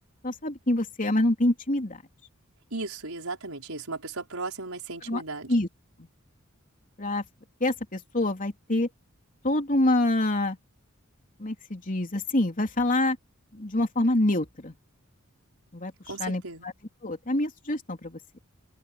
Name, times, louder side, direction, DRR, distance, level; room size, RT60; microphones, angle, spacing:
voice 1, 0.2-2.0 5.1-5.2 5.5-5.7 6.0-6.1 7.0-7.2 7.6-8.9 9.4-10.6 11.4-13.2 13.5-14.7 15.7-15.9 16.2-16.7 17.0-18.2, left 1 dB, 40° left, 3.4 m, -26 dB
voice 2, 2.7-5.5 16.1-16.7, right 3 dB, 85° right, 5.4 m, -36 dB
open air
head